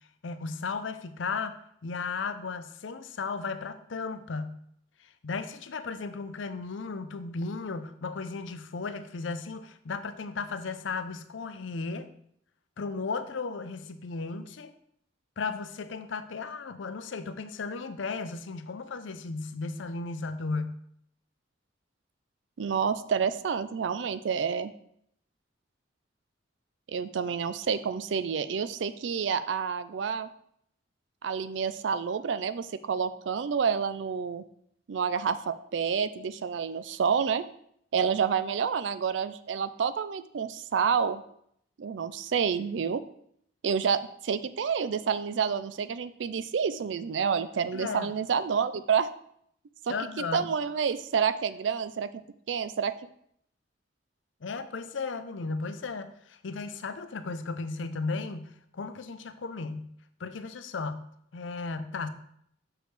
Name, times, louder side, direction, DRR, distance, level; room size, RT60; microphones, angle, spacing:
voice 1, 0.2-4.6 5.2-12.1 12.8-14.7 15.4-20.8 47.7-48.1 49.9-50.5 54.4-59.9 60.2-61.1 61.3-62.1, left 4 dB, 85° left, 11 dB, 0.6 m, -35 dB
voice 2, 22.6-24.7 26.9-30.3 31.2-34.4 34.9-37.4 37.9-41.2 41.8-43.0 43.6-49.1 49.9-52.9, right 6 dB, 70° right, 13 dB, 0.4 m, -29 dB
6.7 x 6.1 x 3.3 m, 0.69 s
head